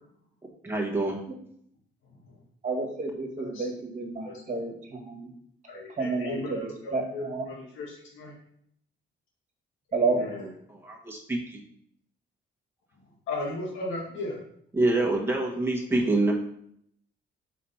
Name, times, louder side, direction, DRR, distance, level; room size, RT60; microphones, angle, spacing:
voice 1, 0.6-1.2 10.7-11.6 14.7-16.3, right 2 dB, 10° right, -2 dB, 1.5 m, -26 dB
voice 2, 2.6-5.3 6.0-7.4 9.9-10.2, right 3 dB, 40° right, 1 dB, 1.8 m, -30 dB
voice 3, 5.7-8.3 9.9-10.5 13.3-14.4, left 2 dB, 85° left, -3 dB, 1.7 m, -36 dB
4.5 x 4.1 x 5.6 m, 0.68 s
cardioid pair, 90°, 20 cm